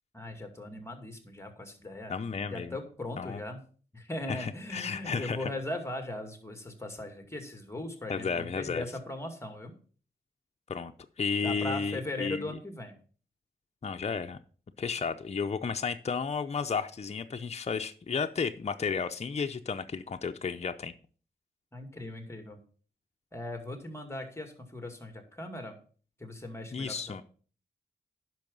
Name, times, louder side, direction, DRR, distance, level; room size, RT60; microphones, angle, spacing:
voice 1, 0.1-2.2 2.5-3.6 3.9-9.7 11.4-12.9 21.7-22.6 23.3-25.7 26.2-27.0, left 1 dB, 15° left, 5 dB, 2.3 m, -39 dB
voice 2, 2.1-2.8 3.2-3.4 4.3-5.5 8.1-8.8 10.7-12.5 13.8-14.4 14.8-20.9 26.7-27.2, left 5 dB, 40° left, 7 dB, 0.6 m, -33 dB
10.5 x 6.1 x 5.3 m, 0.42 s
cardioid pair, 70°, 17 cm